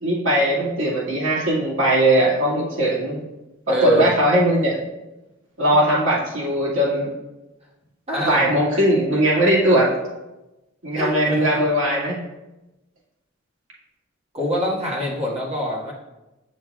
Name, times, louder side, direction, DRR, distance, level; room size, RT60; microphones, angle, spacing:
voice 1, 0.0-3.2 3.8-4.8 5.6-7.1 8.2-9.9 10.8-12.2, right 1 dB, 80° right, -5 dB, 2.1 m, -19 dB
voice 2, 3.7-4.1 8.1-8.5 10.9-11.5 14.3-15.9, equal, 30° right, -5 dB, 1.6 m, -24 dB
7.8 x 6.3 x 2.3 m, 1.0 s
head